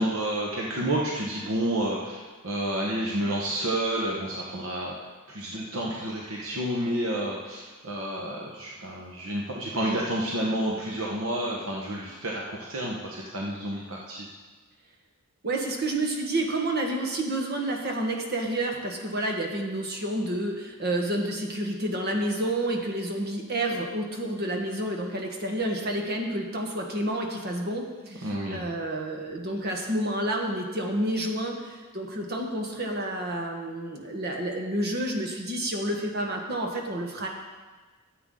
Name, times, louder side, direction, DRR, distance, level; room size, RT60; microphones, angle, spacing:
voice 1, 0.0-4.9 5.3-14.3 28.1-28.7, right 1 dB, 65° right, -3 dB, 1.1 m, -30 dB
voice 2, 15.4-37.3, right 1 dB, 50° right, 1 dB, 1.4 m, -29 dB
14.0 x 8.0 x 3.8 m, 1.3 s
head